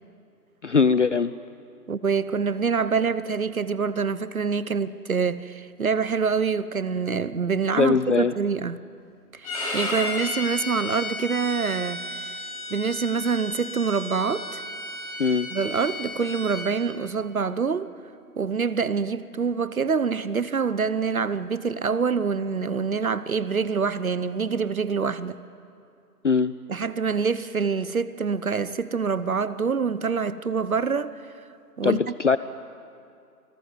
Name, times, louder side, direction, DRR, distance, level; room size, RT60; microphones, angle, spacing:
voice 1, 0.6-1.3 7.8-8.3 15.2-15.5 26.2-26.5 31.8-32.4, left 5 dB, 50° left, 0.6 m, -21 dB
voice 2, 1.9-8.8 9.3-12.3 12.7-14.6 15.5-17.9 18.4-25.4 26.7-31.3 31.8-32.0, right 5 dB, 60° right, 1.0 m, -26 dB
Bowed string instrument, 9.4-16.7, left 2 dB, 25° left, 7.0 m, -33 dB
26.5 x 20.0 x 9.5 m
figure-of-eight pair, 155°, 48 cm